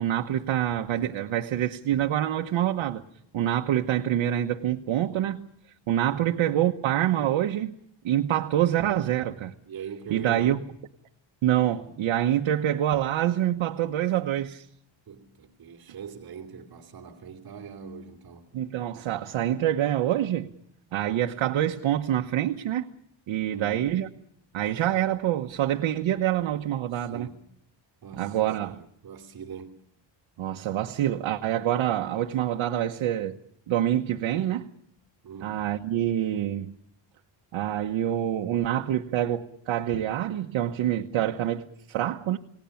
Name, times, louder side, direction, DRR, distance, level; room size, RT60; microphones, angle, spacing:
voice 1, 0.0-3.0 3.3-5.5 5.9-7.7 8.0-9.5 10.1-10.6 11.4-14.7 18.5-20.5 20.9-22.9 23.3-24.1 24.5-27.3 28.1-28.8 30.4-33.4 33.7-34.7 35.4-36.7 37.5-42.4, right 11 dB, 85° right, 1.2 m, -26 dB
voice 2, 9.7-10.5 15.1-18.5 23.5-23.9 26.9-27.4 28.0-29.7 35.2-35.7, right 6 dB, 50° right, 2.6 m, -42 dB
29.5 x 18.5 x 7.1 m
cardioid pair, 150°, 46 cm